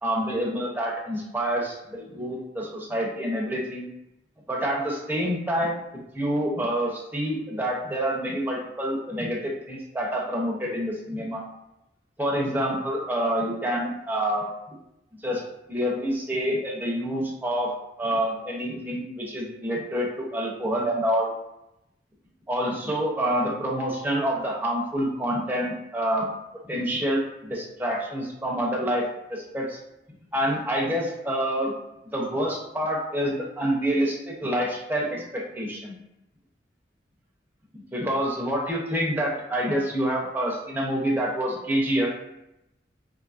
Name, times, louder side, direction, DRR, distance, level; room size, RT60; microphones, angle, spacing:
voice 1, 0.0-3.9 4.5-11.4 12.2-14.5 15.2-15.4 15.7-17.7 18.0-21.3 22.5-26.3 26.6-29.0 29.3-29.8 30.3-31.7 32.0-36.0 37.9-42.1, equal, 10° right, -3 dB, 0.6 m, -27 dB
2.7 x 2.5 x 2.3 m, 0.87 s
head